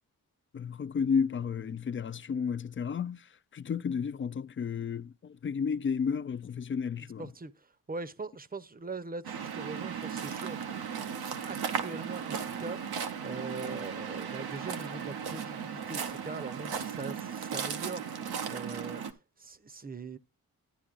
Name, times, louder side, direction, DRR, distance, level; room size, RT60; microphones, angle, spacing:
voice 1, 0.5-3.2 3.5-7.2, left 6 dB, 35° left, 0.4 m, -32 dB
voice 2, 7.0-20.2, right 3 dB, 25° right, 0.7 m, -42 dB
Waves surf, 9.2-19.1, right 7 dB, 90° right, 0.8 m, -36 dB
11.0 x 10.0 x 2.5 m
cardioid pair, 45°, 37 cm